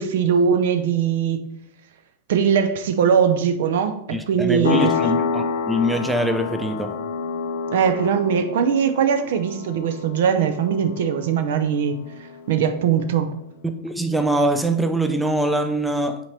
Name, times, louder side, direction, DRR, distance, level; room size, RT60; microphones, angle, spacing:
voice 1, 0.0-1.4 2.3-5.0 7.7-12.0 12.5-13.3, right 7 dB, 55° right, 0.6 m, -20 dB
voice 2, 4.1-6.9 13.6-16.2, right 1 dB, 5° right, 0.6 m, -23 dB
sound 1, 4.6-13.0, left 6 dB, 60° left, 0.6 m, -28 dB
5.7 x 4.5 x 4.2 m
figure-of-eight pair, 90°, 0 cm